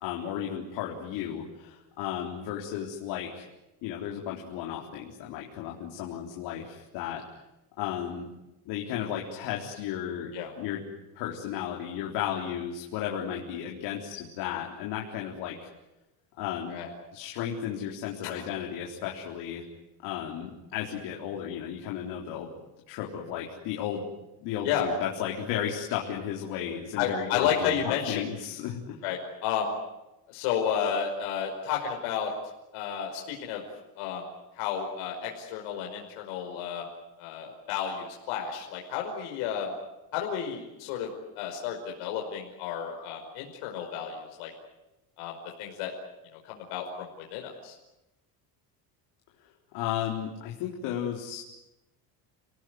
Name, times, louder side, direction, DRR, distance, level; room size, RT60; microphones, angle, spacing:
voice 1, 0.0-3.5 3.8-7.2 7.8-8.3 8.7-10.8 11.1-15.6 16.4-16.8 17.1-19.6 20.0-22.5 22.9-24.0 24.4-29.0 49.7-51.4, left 9 dB, 70° left, -1 dB, 4.0 m, -34 dB
voice 2, 27.0-28.2 29.0-29.8 30.3-32.3 32.7-33.6 34.0-34.2 34.6-36.8 37.2-39.7 40.1-41.1 41.4-44.5 45.2-45.9 46.5-47.7, left 8 dB, 90° left, 1 dB, 5.4 m, -32 dB
29.5 x 19.0 x 9.5 m, 0.97 s
cardioid pair, 165°, 42 cm